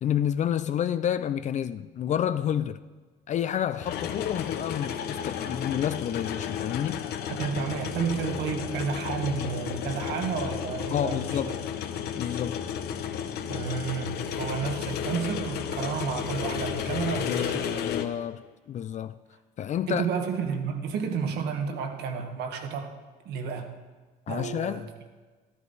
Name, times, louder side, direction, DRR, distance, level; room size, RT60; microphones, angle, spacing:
voice 1, 0.0-2.8 3.3-7.0 10.9-11.6 12.2-12.7 17.2-19.2 19.6-20.1 24.3-24.9, left 10 dB, 45° left, 0.4 m, -29 dB
sound 1, 1.1-1.2 3.8-18.1, left 8 dB, 75° left, 0.9 m, -33 dB
voice 2, 7.3-11.6 13.5-17.8 19.9-23.0 23.2-23.8 24.3-24.9, right 6 dB, 75° right, 1.4 m, -31 dB
13.5 x 12.0 x 4.1 m
cardioid pair, 110°, 17 cm